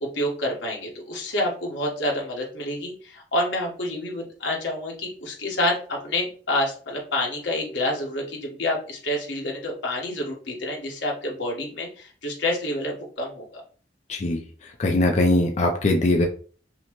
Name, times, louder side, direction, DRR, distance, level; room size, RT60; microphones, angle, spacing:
voice 1, 0.0-13.6, left 1 dB, 85° left, -1 dB, 1.4 m, -28 dB
voice 2, 14.1-14.4 14.8-16.3, left 2 dB, 40° left, 2 dB, 0.4 m, -21 dB
5.6 x 2.1 x 3.0 m, 0.42 s
head